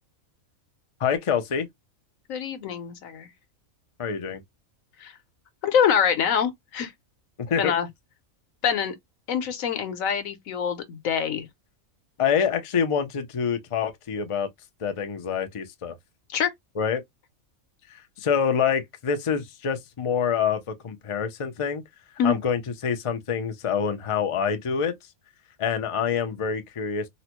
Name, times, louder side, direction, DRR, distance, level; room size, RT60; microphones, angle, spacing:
voice 1, 1.0-1.7 4.0-4.4 7.4-7.7 12.2-14.5 14.8-16.0 16.8-17.0 17.9-21.8 22.2-25.0 25.6-27.1, left 7 dB, 55° left, 0.3 m, -26 dB
voice 2, 2.3-3.3 5.0-5.1 5.6-6.9 7.6-7.9 8.6-8.9 9.3-11.5 16.3-16.5 22.2-22.4, left 7 dB, 75° left, 1.2 m, -25 dB
3.9 x 2.1 x 2.9 m
omnidirectional pair, 1.4 m